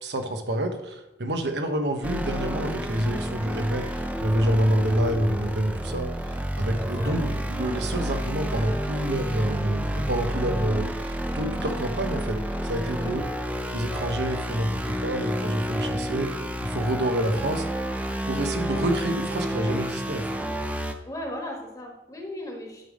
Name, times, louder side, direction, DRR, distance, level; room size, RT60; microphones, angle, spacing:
voice 1, 0.0-13.2 13.7-17.7 18.3-20.3, right 1 dB, 75° right, 5 dB, 1.1 m, -28 dB
sound 1, 2.0-20.9, equal, 10° right, 0.5 m, -30 dB
Tentacle Wedding, 11.2-19.8, equal, 55° right, 2.1 m, -49 dB
voice 2, 21.0-22.9, left 1 dB, 20° left, 0 dB, 1.3 m, -37 dB
10.5 x 3.6 x 6.3 m, 0.95 s
head